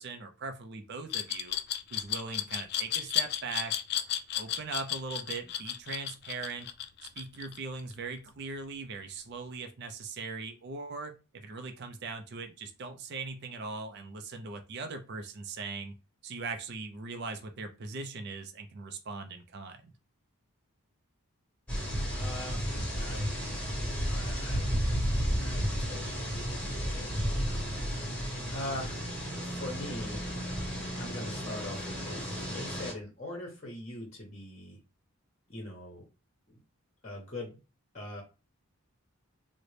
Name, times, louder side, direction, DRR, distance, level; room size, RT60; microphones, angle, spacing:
voice 1, 0.0-1.6 1.9-3.7 4.3-6.7 7.2-15.9 16.2-19.9, right 4 dB, 50° right, 6 dB, 0.4 m, -40 dB
Glass, 1.1-7.9, left 11 dB, 45° left, 0.3 m, -33 dB
sound 1, 21.7-32.9, equal, 5° left, 1.0 m, -33 dB
voice 2, 22.1-23.2 23.9-24.7 25.4-27.7 28.1-29.1 29.4-30.2 30.6-30.7 31.0-34.8 35.5-36.0 36.5-36.6 37.0-37.5 37.9-38.2, left 1 dB, 30° left, 0 dB, 0.8 m, -42 dB
3.8 x 2.1 x 3.2 m, 0.30 s
head